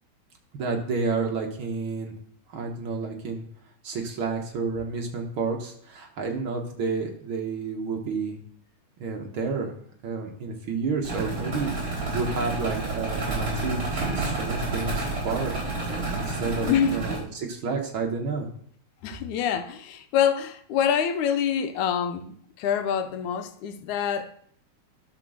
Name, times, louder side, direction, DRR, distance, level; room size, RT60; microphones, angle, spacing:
voice 1, 0.5-2.1 2.5-3.4 3.8-8.4 9.0-9.7 10.0-18.5, right 4 dB, 55° right, 1.6 m, -30 dB
sound 1, 11.0-17.2, right 2 dB, 25° right, 5.1 m, -30 dB
voice 2, 16.6-17.0 19.0-24.5, left 8 dB, 90° left, 2.2 m, -26 dB
12.0 x 4.5 x 6.3 m
omnidirectional pair, 3.4 m